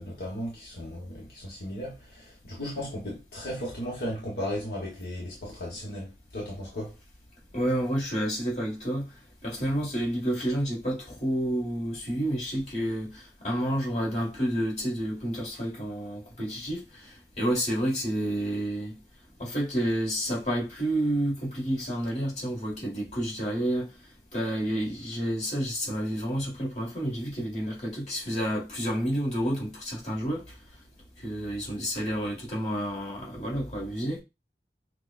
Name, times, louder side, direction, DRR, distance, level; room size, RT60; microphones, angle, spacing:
voice 1, 0.0-6.9, equal, 65° left, 1.1 m, -36 dB
voice 2, 7.5-9.1 9.4-19.0 19.4-23.9 24.3-30.4 31.2-34.2, right 1 dB, 40° left, 1.7 m, -30 dB
6.2 x 2.3 x 2.4 m
head